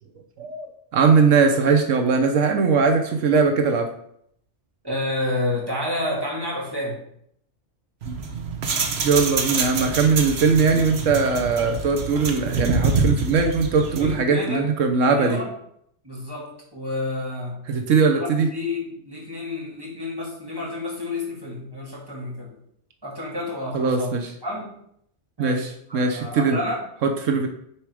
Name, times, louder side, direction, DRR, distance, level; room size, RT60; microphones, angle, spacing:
voice 1, 0.9-3.9 9.0-15.4 17.7-18.5 23.7-24.3 25.4-26.6 27.0-27.5, right 5 dB, 80° right, 5 dB, 1.3 m, -20 dB
voice 2, 4.8-7.0 14.0-14.7 15.1-15.5 16.0-17.6 18.1-22.5 23.0-24.1 24.4-24.7 25.4-26.9 27.3-27.4, left 2 dB, 20° right, -4 dB, 2.9 m, -30 dB
sound 1, 8.0-14.2, right 4 dB, 60° right, 1.3 m, -26 dB
9.8 x 4.8 x 4.9 m, 0.69 s
omnidirectional pair, 1.3 m